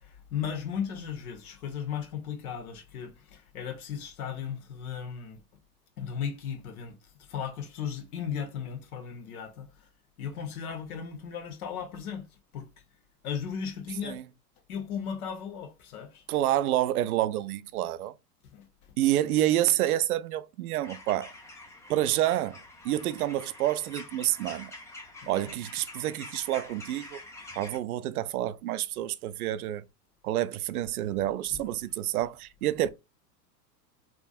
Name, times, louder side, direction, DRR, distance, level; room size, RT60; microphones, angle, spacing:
voice 1, 0.0-5.4 6.0-9.9 10.2-12.3 12.5-12.7 13.2-14.2 14.7-16.3 18.5-18.7 25.2-25.4 31.5-31.6, left 7 dB, 60° left, 1.1 m, -36 dB
voice 2, 16.3-18.1 19.0-21.3 21.9-22.6 22.8-24.7 25.3-27.2 27.6-29.8 30.2-32.9, right 13 dB, 65° right, 0.5 m, -28 dB
sound 1, 20.8-27.8, left 2 dB, 5° left, 0.4 m, -46 dB
3.5 x 2.6 x 2.4 m
hypercardioid pair, 100°, 49 cm